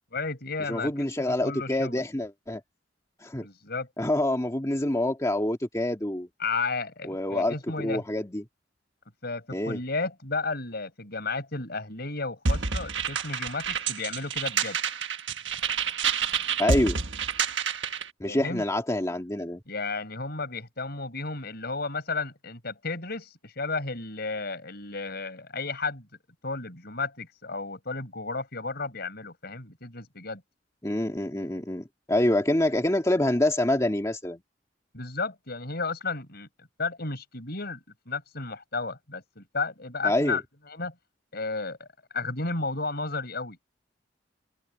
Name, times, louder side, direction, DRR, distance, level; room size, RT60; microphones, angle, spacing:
voice 1, 0.1-2.0 3.4-3.9 6.4-8.0 9.2-14.8 18.2-18.6 19.7-26.1 26.4-30.4 34.9-40.4 40.7-40.9 41.3-41.9 42.1-43.6, left 3 dB, 55° left, 6.8 m, -33 dB
voice 2, 0.7-2.6 3.2-3.5 4.0-6.3 7.1-8.4 9.5-9.8 16.6-17.0 18.2-19.6 30.8-34.4 40.0-40.4, left 1 dB, 15° left, 2.1 m, -26 dB
sound 1, 12.5-18.1, right 6 dB, 75° right, 1.5 m, -28 dB
head